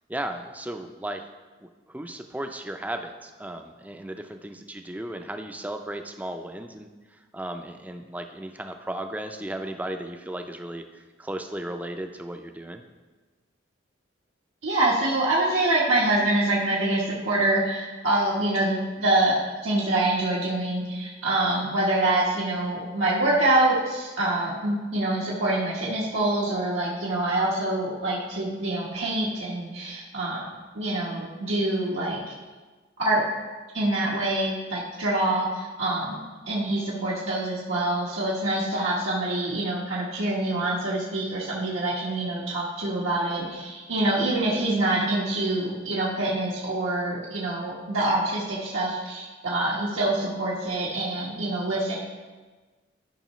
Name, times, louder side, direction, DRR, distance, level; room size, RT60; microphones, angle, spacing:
voice 1, 0.1-1.2 1.6-12.8, right 1 dB, 10° right, 6 dB, 0.4 m, -35 dB
voice 2, 14.6-19.3 19.6-30.5 30.7-32.2 33.0-33.2 33.7-52.0, right 2 dB, 85° right, -6 dB, 1.3 m, -25 dB
13.0 x 5.5 x 3.1 m, 1.3 s
head